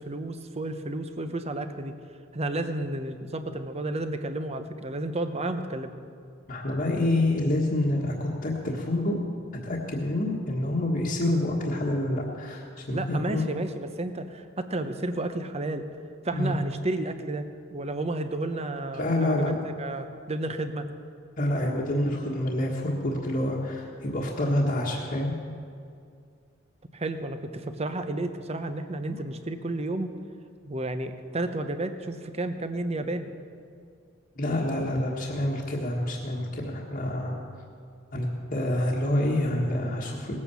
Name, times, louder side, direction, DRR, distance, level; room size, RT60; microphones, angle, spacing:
voice 1, 0.0-1.9 2.3-5.9 12.9-15.9 16.2-20.9 26.9-30.1 30.6-33.3, right 2 dB, 30° right, 8 dB, 0.9 m, -32 dB
voice 2, 6.5-9.2 9.6-13.4 16.3-16.5 18.9-19.6 21.4-25.3 34.4-37.4 38.1-40.4, left 1 dB, 45° left, -4 dB, 1.6 m, -27 dB
18.5 x 8.6 x 7.0 m, 2.3 s
head